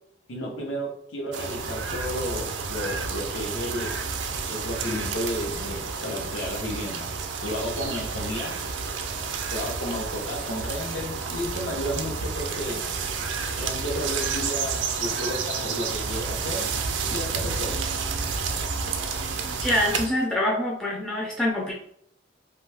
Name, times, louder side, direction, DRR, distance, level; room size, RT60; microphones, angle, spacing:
voice 1, 0.3-3.9 4.5-7.1 7.4-8.6 9.5-12.8 13.6-16.7 17.1-17.8, equal, 80° left, 1 dB, 0.8 m, -32 dB
sound 1, 1.3-20.1, right 5 dB, 75° right, 0.4 m, -30 dB
voice 2, 19.6-21.7, left 1 dB, 5° left, -4 dB, 0.3 m, -25 dB
2.6 x 2.2 x 3.3 m, 0.67 s
head